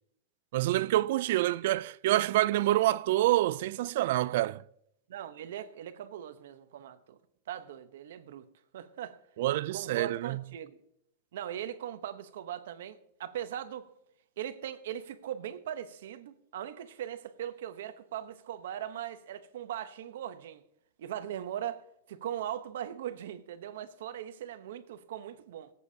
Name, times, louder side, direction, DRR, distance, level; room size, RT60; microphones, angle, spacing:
voice 1, 0.5-4.6 9.4-10.4, right 15 dB, 60° right, 0.3 m, -27 dB
voice 2, 5.1-7.2 7.5-8.5 8.7-9.2 9.7-10.8 11.3-13.9 14.4-20.6 21.0-25.7, right 10 dB, 75° right, 0.9 m, -40 dB
23.0 x 8.2 x 2.8 m
supercardioid pair, 160°, 0 cm